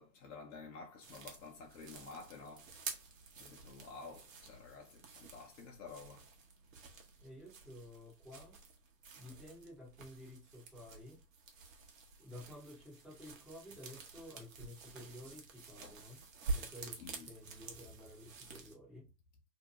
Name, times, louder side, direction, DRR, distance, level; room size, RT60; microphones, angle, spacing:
voice 1, 0.0-2.8 3.4-6.3 6.8-6.9 15.8-16.0 17.0-17.3, left 4 dB, 50° left, 0.8 m, -51 dB
sound 1, 1.0-18.7, right 4 dB, 55° right, 0.8 m, -48 dB
voice 2, 7.2-8.6 9.1-11.2 12.2-16.2 16.5-19.1, left 1 dB, ahead, 0.7 m, -52 dB
2.6 x 2.1 x 2.8 m
hypercardioid pair, 120°, 49 cm